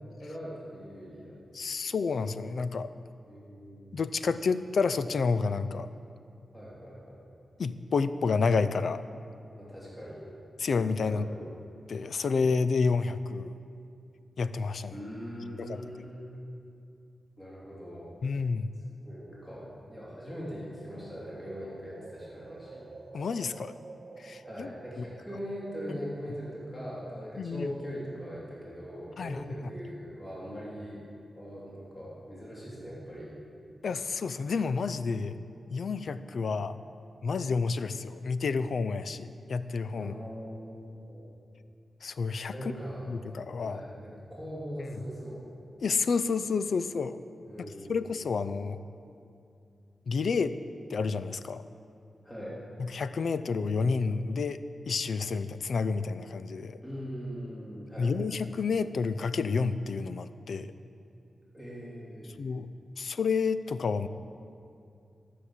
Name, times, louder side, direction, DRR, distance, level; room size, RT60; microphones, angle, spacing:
voice 1, 0.2-1.4 3.3-4.0 6.5-7.2 9.5-10.3 11.0-11.4 14.9-16.3 17.4-18.1 19.0-22.9 24.4-31.1 31.3-33.4 39.9-41.2 42.5-43.1 43.6-45.4 47.4-48.0 52.2-52.6 56.8-58.1 61.5-62.4, equal, 20° left, -6 dB, 3.0 m, -41 dB
voice 2, 1.5-2.9 3.9-5.9 7.6-9.2 10.6-11.3 11.9-13.6 14.4-15.0 15.6-16.1 18.2-18.7 23.1-23.7 24.2-24.7 25.9-26.0 27.4-27.7 29.2-29.7 33.8-35.4 35.7-36.7 37.2-40.1 42.0-42.5 43.1-43.8 45.8-47.2 47.9-48.8 50.1-50.5 50.9-51.6 52.9-56.8 58.0-60.7 62.4-62.7 63.0-64.1, left 4 dB, 70° left, 13 dB, 0.4 m, -30 dB
sound 1, 20.1-28.1, right 3 dB, 55° right, 1.2 m, -51 dB
12.5 x 6.5 x 7.2 m, 2.5 s
cardioid pair, 65°, 0 cm